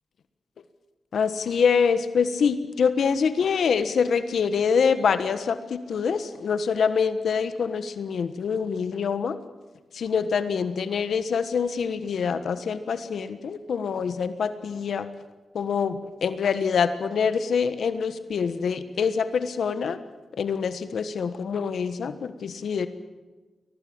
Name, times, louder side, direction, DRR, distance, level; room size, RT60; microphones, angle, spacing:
voice 1, 1.1-9.4 9.9-15.1 15.5-20.0 20.3-22.9, left 6 dB, 75° left, 11 dB, 1.3 m, -25 dB
22.5 x 18.5 x 8.8 m, 1.2 s
cardioid pair, 90°, 0 cm